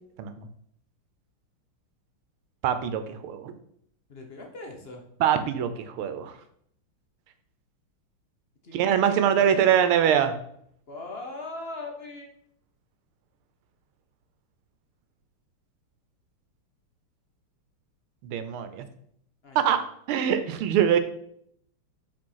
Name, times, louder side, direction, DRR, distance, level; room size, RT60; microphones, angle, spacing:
voice 1, 2.6-3.5 5.2-6.4 8.7-10.3 18.2-18.9 19.6-19.8 20.1-21.0, right 9 dB, 85° right, 10 dB, 1.6 m, -23 dB
voice 2, 4.1-5.0 8.6-9.8 10.9-12.3 19.4-19.7, left 2 dB, 50° left, 2 dB, 0.7 m, -40 dB
5.1 x 4.9 x 5.5 m, 0.68 s
omnidirectional pair, 2.3 m